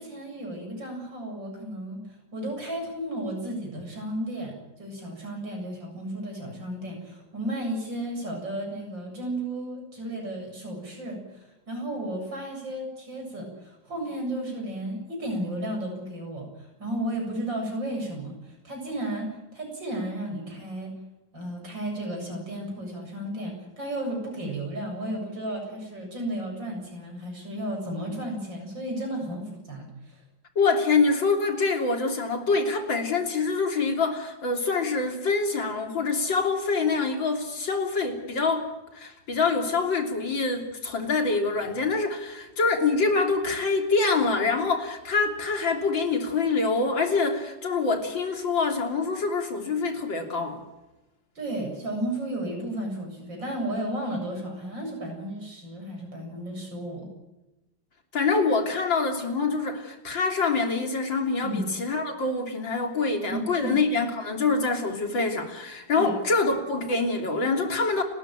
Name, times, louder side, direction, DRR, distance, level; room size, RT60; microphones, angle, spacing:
voice 1, 0.0-2.0 2.3-20.9 21.3-30.2 51.3-57.1 61.4-61.6 63.3-63.7 66.0-66.1, right 1 dB, 80° right, 2 dB, 8.4 m, -33 dB
voice 2, 30.6-38.7 38.9-50.6 58.1-68.0, left 4 dB, 85° left, 4 dB, 4.0 m, -25 dB
29.5 x 14.0 x 9.1 m, 1.0 s
omnidirectional pair, 2.0 m